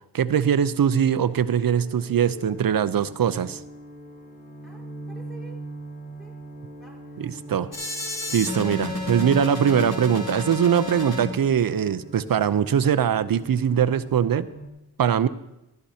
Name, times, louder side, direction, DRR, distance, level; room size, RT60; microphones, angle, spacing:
voice 1, 0.1-3.6 7.2-7.7 8.3-14.5 15.0-15.3, right 8 dB, 60° right, 14 dB, 0.6 m, -22 dB
sound 1, 0.6-14.7, right 1 dB, 20° left, 1.3 m, -42 dB
voice 2, 4.6-5.6 6.2-6.3 6.8-7.8, right 4 dB, ahead, -2 dB, 4.6 m, -50 dB
sound 2, 7.7-11.3, left 2 dB, 65° left, 2.6 m, -31 dB
15.0 x 11.5 x 2.8 m, 0.91 s
cardioid pair, 60°, 41 cm